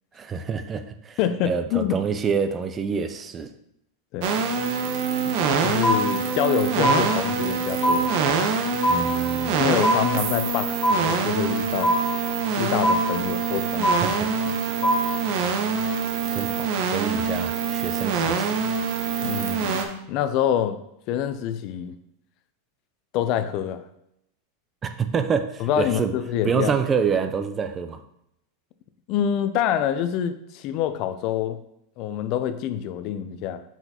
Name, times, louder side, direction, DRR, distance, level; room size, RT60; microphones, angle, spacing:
voice 1, 0.1-1.2 1.4-3.5 8.9-9.6 14.0-14.5 16.3-18.6 24.8-26.1 26.4-28.0, right 6 dB, 25° right, 9 dB, 0.5 m, -27 dB
voice 2, 1.2-2.0 4.1-4.4 5.6-8.1 8.9-9.1 9.6-11.9 12.6-13.9 19.2-20.8 21.1-22.0 23.1-23.8 25.6-26.7 29.1-31.6 32.0-33.6, left 10 dB, 50° left, 11 dB, 0.5 m, -26 dB
sound 1, 4.2-19.9, right 5 dB, 60° right, 0.8 m, -25 dB
sound 2, 5.8-6.5 6.8-7.6 7.8-8.6 8.8-9.6 9.8-10.6 10.8-11.6 11.8-12.6 12.8-13.6 13.8-14.6 14.8-15.6, equal, 30° left, 1.4 m, -23 dB
5.7 x 5.7 x 2.9 m, 0.78 s
supercardioid pair, 125°, 0 cm